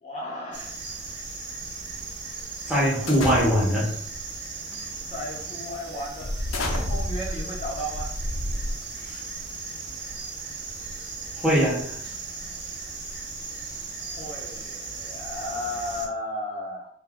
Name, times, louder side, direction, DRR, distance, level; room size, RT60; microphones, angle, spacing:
voice 1, 0.0-0.8 3.2-3.4 5.1-6.3 6.9-8.1 14.0-16.9, left 1 dB, 30° left, -2 dB, 0.5 m, -34 dB
sound 1, 0.5-16.1, right 4 dB, 55° right, 0.7 m, -37 dB
voice 2, 2.7-3.9 9.1-9.2 11.3-12.0, equal, 5° right, -6 dB, 0.7 m, -22 dB
sound 2, 3.1-3.9 4.7-5.0 5.4-5.5 6.2-9.1, left 1 dB, 90° left, 0.6 m, -30 dB
2.6 x 2.3 x 3.5 m, 0.67 s
head